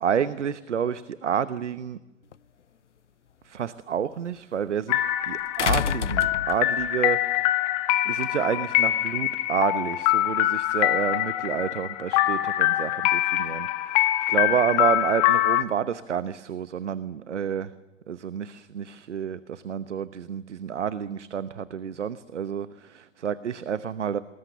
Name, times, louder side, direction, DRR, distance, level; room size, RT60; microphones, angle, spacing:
voice 1, 0.0-2.0 3.5-5.0 5.3-7.2 8.1-17.7 18.1-22.7 22.9-24.2, right 8 dB, 65° right, 15 dB, 1.1 m, -29 dB
sound 1, 2.3-2.4 5.6-6.9 8.2-8.3, left 8 dB, 65° left, 0.8 m, -27 dB
sound 2, 4.9-15.6, left 15 dB, 30° left, 1.4 m, -24 dB
28.0 x 20.5 x 7.1 m, 1.0 s
figure-of-eight pair, 115°, 38 cm